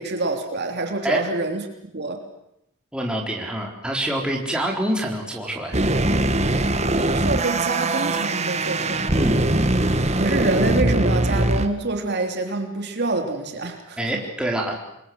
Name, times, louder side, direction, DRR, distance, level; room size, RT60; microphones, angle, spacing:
voice 1, 0.0-1.6 1.9-2.3 6.9-9.1 10.2-14.2, right 2 dB, 50° right, 4 dB, 3.3 m, -26 dB
voice 2, 2.9-5.8 9.1-9.4 14.0-14.8, right 1 dB, 5° right, 0 dB, 4.0 m, -26 dB
sound 1, 5.7-11.7, right 2 dB, 30° right, 1.6 m, -21 dB
27.5 x 22.5 x 7.9 m, 0.79 s
head